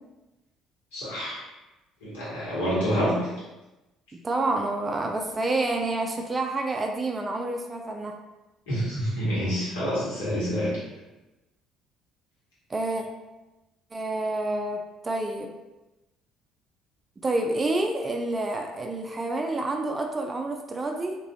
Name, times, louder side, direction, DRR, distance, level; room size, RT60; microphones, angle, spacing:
voice 1, 0.9-1.4 2.0-3.1 8.7-10.8, equal, 75° left, -9 dB, 1.5 m, -27 dB
voice 2, 4.1-8.2 12.7-13.0 13.9-15.5 17.2-21.2, right 2 dB, 25° right, 2 dB, 0.4 m, -28 dB
3.0 x 2.6 x 2.8 m, 1.0 s
figure-of-eight pair, 50°, 0 cm